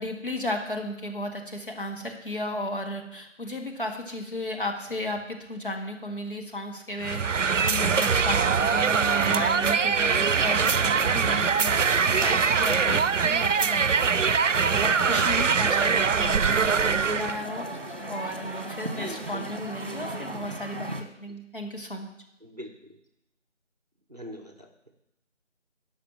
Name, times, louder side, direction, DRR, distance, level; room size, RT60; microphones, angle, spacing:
voice 1, 0.0-11.8 12.1-14.2 14.7-17.8 18.1-22.1, left 1 dB, 45° left, 1 dB, 1.7 m, -34 dB
sound 1, 7.0-17.4, right 6 dB, 80° right, 0.6 m, -23 dB
sound 2, 8.8-18.6, right 1 dB, 20° left, 2.1 m, -48 dB
sound 3, 14.7-21.0, right 2 dB, 50° right, 1.5 m, -36 dB
voice 2, 18.8-19.4 22.4-23.0 24.1-24.7, equal, 35° right, 5 dB, 1.0 m, -41 dB
11.5 x 5.9 x 7.2 m, 0.84 s
figure-of-eight pair, 170°, 37 cm